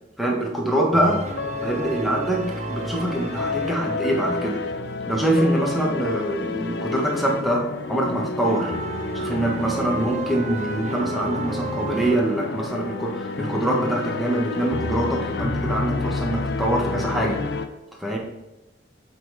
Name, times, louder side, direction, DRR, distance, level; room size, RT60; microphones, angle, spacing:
voice 1, 0.2-1.2 1.6-8.7 9.1-17.4 18.0-18.2, right 1 dB, ahead, -2 dB, 1.2 m, -24 dB
sound 1, 0.9-4.3 4.9-5.0 6.1-6.2 8.4-12.2, right 3 dB, 35° right, 0.5 m, -33 dB
sound 2, 1.2-17.7, left 3 dB, 60° left, 0.5 m, -30 dB
7.9 x 3.9 x 4.8 m, 0.95 s
head